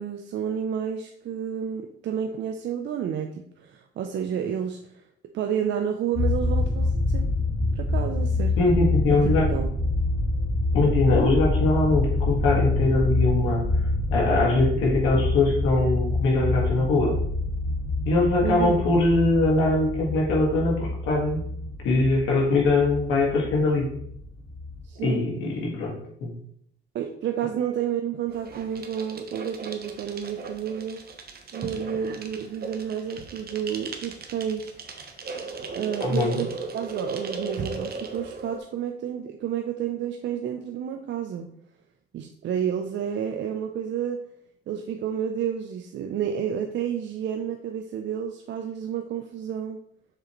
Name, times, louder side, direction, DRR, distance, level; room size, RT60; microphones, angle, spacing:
voice 1, 0.0-5.0 5.3-7.3 7.7-8.6 9.1-9.7 18.4-18.8 24.9-25.3 26.9-31.0 31.5-34.7 35.7-41.5 42.1-44.2 44.7-49.8, right 8 dB, 65° right, 4 dB, 0.6 m, -30 dB
sound 1, 6.1-24.8, left 2 dB, 60° left, 2.2 m, -26 dB
voice 2, 8.6-9.5 10.7-13.6 14.1-17.2 18.1-21.4 21.8-23.9 25.0-26.0 26.2-26.3 36.0-36.4, left 2 dB, 90° left, -2 dB, 1.7 m, -22 dB
sound 2, 28.3-38.6, right 4 dB, 50° right, 1.0 m, -37 dB
6.7 x 4.9 x 3.1 m, 0.70 s
cardioid pair, 90°, 20 cm